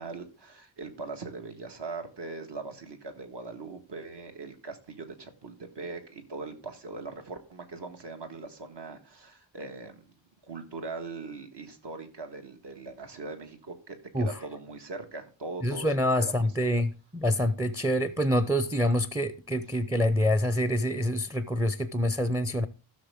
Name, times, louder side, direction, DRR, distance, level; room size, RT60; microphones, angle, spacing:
voice 1, 0.0-10.1 10.4-16.5, right 3 dB, 60° right, 1.7 m, -41 dB
voice 2, 15.6-22.7, left 1 dB, 5° right, 0.5 m, -26 dB
15.5 x 6.6 x 3.6 m
wide cardioid pair, 125°, 46 cm